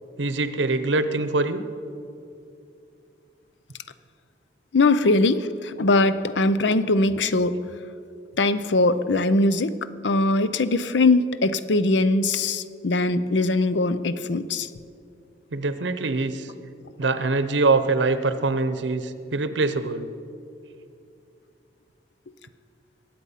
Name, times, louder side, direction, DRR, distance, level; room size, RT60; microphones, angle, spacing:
voice 1, 0.2-1.6 15.5-16.5 17.0-20.1, right 3 dB, 85° right, 11 dB, 0.8 m, -24 dB
voice 2, 4.7-7.6 8.4-9.7 10.0-14.7, left 2 dB, 75° left, 13 dB, 0.6 m, -21 dB
21.5 x 8.6 x 5.7 m, 2.5 s
head